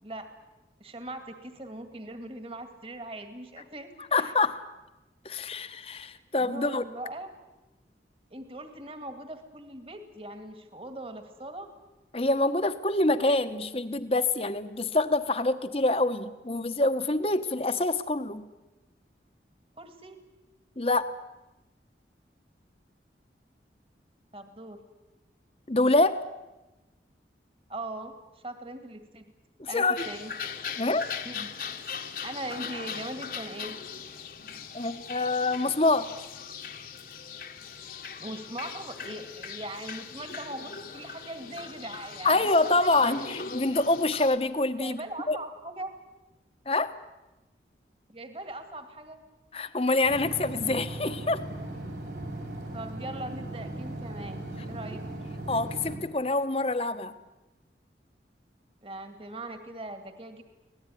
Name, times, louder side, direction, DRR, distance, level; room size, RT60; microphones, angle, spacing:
voice 1, 0.8-4.3 6.4-7.3 8.3-11.7 19.8-20.2 24.3-24.8 27.7-28.1 28.4-29.2 29.7-30.3 31.2-31.5 32.2-33.8 38.2-43.2 44.8-45.9 48.1-49.2 52.7-54.4 54.7-55.1 58.8-60.4, right 1 dB, 30° right, 7 dB, 2.1 m, -40 dB
voice 2, 4.0-4.7 5.2-6.8 12.1-18.5 20.8-21.1 25.7-26.3 29.6-30.1 30.8-31.1 34.7-36.1 42.2-45.0 45.3-45.4 46.7-47.0 49.5-51.4 55.5-57.1, left 2 dB, 35° left, 10 dB, 1.2 m, -26 dB
sound 1, 30.0-44.4, left 6 dB, 50° left, 1.5 m, -40 dB
sound 2, 50.0-56.0, right 1 dB, 75° right, 6.4 m, -38 dB
24.5 x 18.5 x 10.0 m, 1.0 s
head